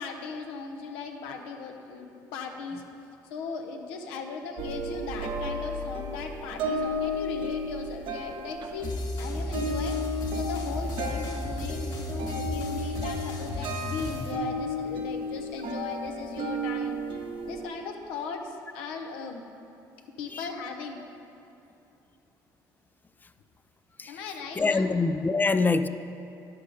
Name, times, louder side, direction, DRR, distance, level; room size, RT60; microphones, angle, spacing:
voice 1, 0.0-2.8 3.2-10.0 10.3-17.0 17.5-19.4 20.2-21.0 24.1-24.9, left 5 dB, 85° left, 3 dB, 0.9 m, -38 dB
sound 1, 4.6-17.6, equal, 65° right, 1.0 m, -34 dB
sound 2, 8.8-14.3, left 2 dB, 50° left, 1.9 m, -34 dB
voice 2, 24.6-25.9, left 3 dB, 20° left, 12 dB, 0.4 m, -25 dB
10.0 x 7.6 x 5.1 m, 2.8 s
supercardioid pair, 75°, 9 cm